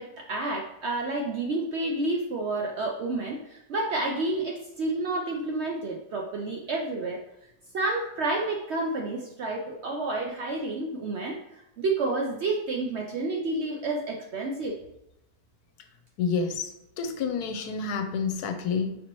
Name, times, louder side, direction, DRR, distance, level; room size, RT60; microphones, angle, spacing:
voice 1, 0.0-7.2 7.7-14.8, right 2 dB, 65° right, 0 dB, 0.7 m, -30 dB
voice 2, 16.2-19.0, left 5 dB, 80° left, 6 dB, 1.1 m, -29 dB
5.2 x 2.9 x 2.9 m, 0.84 s
omnidirectional pair, 1.6 m